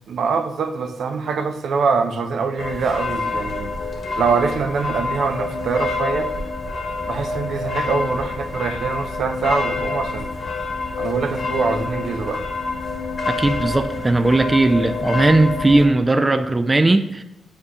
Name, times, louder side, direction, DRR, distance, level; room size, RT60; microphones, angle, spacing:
voice 1, 0.1-3.7 4.2-6.3 7.1-10.3 11.0-12.4, right 5 dB, 75° right, 6 dB, 0.6 m, -23 dB
sound 1, 2.6-15.9, left 3 dB, 50° left, 1.1 m, -27 dB
voice 2, 13.3-17.2, right 2 dB, 20° right, 9 dB, 0.3 m, -17 dB
9.5 x 5.0 x 2.3 m, 0.94 s
wide cardioid pair, 120°, 0 cm